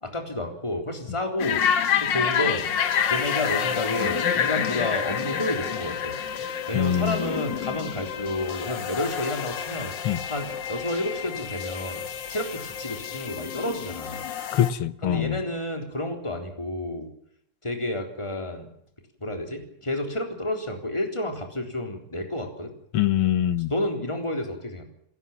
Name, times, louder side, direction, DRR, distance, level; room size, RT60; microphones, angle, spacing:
voice 1, 0.0-1.6 2.0-2.7 3.1-6.1 6.7-9.9 10.3-12.0 12.3-14.2 15.0-17.1 17.6-18.7 19.2-22.7 23.7-24.9, left 1 dB, 15° left, 3.8 m, -30 dB
sound 1, 1.4-14.7, left 8 dB, 60° left, 1.9 m, -28 dB
voice 2, 6.7-7.3 10.0-10.2 14.5-15.4 22.9-23.7, left 10 dB, 80° left, 2.0 m, -24 dB
30.0 x 16.0 x 7.4 m
omnidirectional pair, 2.3 m